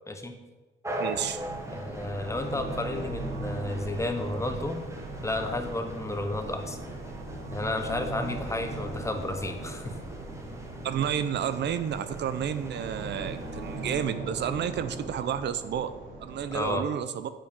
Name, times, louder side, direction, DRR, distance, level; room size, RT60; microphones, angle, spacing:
sound 1, 0.8-14.1, right 1 dB, 15° right, 1.3 m, -42 dB
voice 1, 1.0-1.5 10.8-15.9 16.2-17.3, right 9 dB, 60° right, 12 dB, 0.6 m, -31 dB
sound 2, 1.0-16.7, right 2 dB, 85° right, 2.1 m, -39 dB
voice 2, 1.7-4.8 5.2-6.8 7.5-9.9 16.5-16.8, left 2 dB, 15° left, 6 dB, 1.0 m, -32 dB
7.4 x 5.1 x 5.2 m, 1.2 s
cardioid pair, 90°, 20 cm